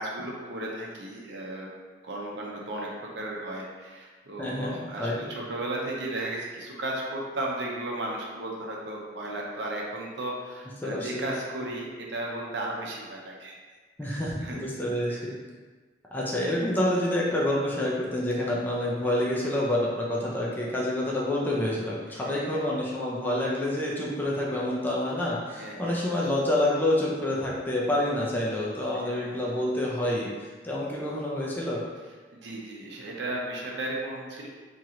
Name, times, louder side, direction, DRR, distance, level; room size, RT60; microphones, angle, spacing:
voice 1, 0.0-1.7 2.0-13.5 14.1-14.6 15.1-15.2 22.1-22.6 25.5-26.2 29.0-29.4 32.3-34.5, right 1 dB, 75° right, -2 dB, 0.8 m, -35 dB
voice 2, 4.4-5.2 10.8-11.3 14.0-15.4 16.1-31.8, left 1 dB, 10° left, -5 dB, 0.5 m, -28 dB
3.0 x 2.9 x 3.7 m, 1.4 s
head